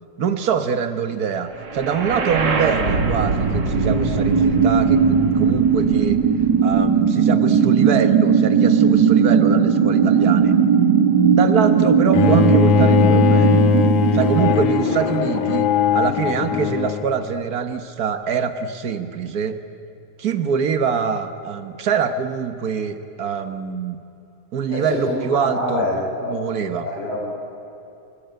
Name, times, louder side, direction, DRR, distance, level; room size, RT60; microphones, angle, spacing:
voice 1, 0.2-6.2 6.6-10.6 11.3-13.6 14.1-19.6 20.2-24.0 24.5-25.8 26.3-26.9, right 6 dB, 70° right, 9 dB, 0.8 m, -24 dB
sound 1, 1.7-15.7, right 6 dB, 40° right, 2.4 m, -18 dB
Bowed string instrument, 12.1-17.2, left 7 dB, 85° left, 2.4 m, -19 dB
voice 2, 24.7-26.4 26.8-27.2, left 2 dB, 55° left, -6 dB, 6.3 m, -26 dB
28.5 x 19.5 x 9.2 m, 2.8 s
omnidirectional pair, 3.4 m